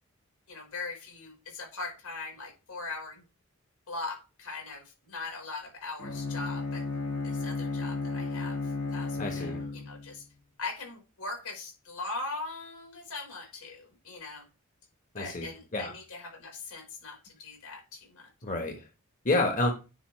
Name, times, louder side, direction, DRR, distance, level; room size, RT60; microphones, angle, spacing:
voice 1, 0.5-3.2 3.9-6.8 7.2-8.6 8.9-10.2 10.6-14.4 15.2-18.3, left 3 dB, 90° left, 2 dB, 4.6 m, -40 dB
Bowed string instrument, 6.0-10.2, left 3 dB, 65° left, 2.4 m, -34 dB
voice 2, 9.2-9.6 15.1-15.9 18.4-18.8 19.2-19.7, left 2 dB, 35° left, 2 dB, 1.4 m, -29 dB
9.8 x 5.4 x 3.3 m, 0.29 s
head